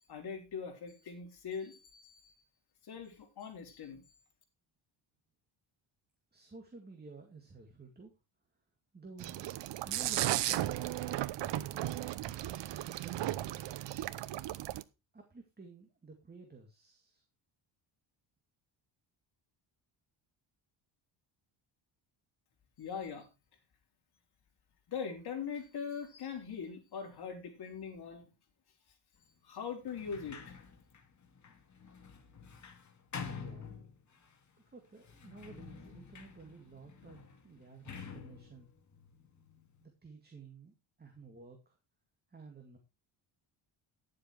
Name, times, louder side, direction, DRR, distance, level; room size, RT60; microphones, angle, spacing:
voice 1, 0.1-2.3 2.8-4.0 22.8-23.3 24.9-28.3 29.4-30.6, left 6 dB, 55° left, 2 dB, 3.9 m, -41 dB
voice 2, 6.3-8.2 8.9-9.5 9.8-12.2 12.6-14.0 15.1-17.2 33.3-33.8 34.7-38.7 39.8-41.8 42.3-42.8, right 4 dB, 20° right, 3 dB, 2.3 m, -53 dB
sound 1, 9.2-14.8, right 14 dB, 65° right, 0.8 m, -35 dB
Sliding door, 29.8-34.3 35.0-39.8, left 5 dB, 40° left, 2.2 m, -49 dB
11.5 x 7.6 x 4.6 m, 0.28 s
cardioid pair, 120°, 46 cm